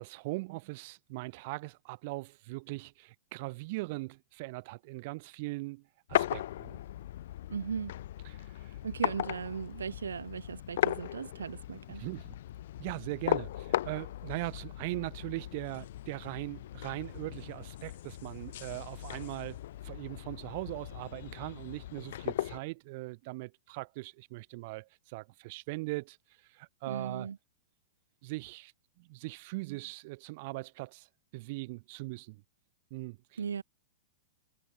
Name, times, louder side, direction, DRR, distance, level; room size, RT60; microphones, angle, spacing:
voice 1, 0.0-5.8 6.1-6.8 8.2-8.8 12.0-12.4 12.8-26.2 26.5-27.3 28.2-28.7 29.0-31.1 31.3-32.4 32.9-33.4, right 24 dB, 50° right, 8.0 m, -40 dB
sound 1, 6.1-22.6, left 13 dB, 60° left, 3.9 m, -37 dB
voice 2, 7.5-7.9 8.8-12.0 26.9-27.4 33.4-33.6, right 6 dB, 80° right, 6.7 m, -37 dB
hypercardioid pair, 105°, 0 cm